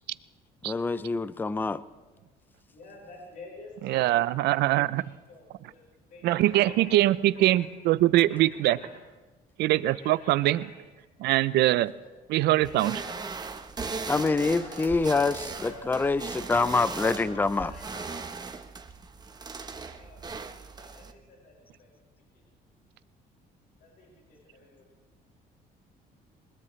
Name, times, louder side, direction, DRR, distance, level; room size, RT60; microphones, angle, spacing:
voice 1, 0.6-1.8 14.1-17.7, left 3 dB, 10° left, 16 dB, 0.5 m, -26 dB
voice 2, 2.7-4.2 4.5-4.6 5.3-5.8 6.1-7.7 8.3-8.9 9.8-10.8 11.5-11.7 12.0-12.1 12.6-13.2 14.6-15.0 15.6-15.9 16.2-16.7 17.0-18.2 19.9-20.5 20.8-21.5 21.8-21.9 23.8-24.8, left 2 dB, 60° left, -2 dB, 5.6 m, -48 dB
voice 3, 3.8-5.0 6.2-8.8 9.6-10.7 11.2-11.9 12.3-13.0, right 15 dB, 80° right, 16 dB, 0.6 m, -23 dB
sound 1, 12.6-21.1, right 4 dB, 25° right, 1.0 m, -38 dB
21.5 x 21.0 x 3.2 m, 1.2 s
cardioid pair, 110°, 17 cm